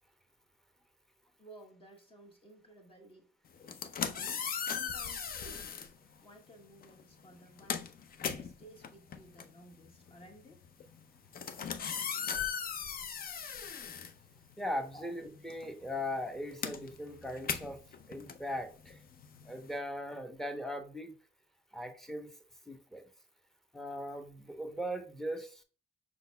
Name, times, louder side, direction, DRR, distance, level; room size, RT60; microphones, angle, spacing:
voice 1, 1.4-3.3 4.0-5.8 6.2-7.9 8.3-10.6 14.9-15.1, right 1 dB, 25° left, 2 dB, 1.5 m, -56 dB
sound 1, 3.6-5.9 6.8-7.0 7.3-14.8 15.1-19.8, left 7 dB, 50° left, 0.5 m, -38 dB
voice 2, 14.6-17.8 18.1-19.0 19.4-21.2 21.7-22.3 22.7-23.0 23.7-25.6, equal, ahead, 6 dB, 0.8 m, -39 dB
5.8 x 4.0 x 2.2 m, 0.37 s
cardioid pair, 90°, 20 cm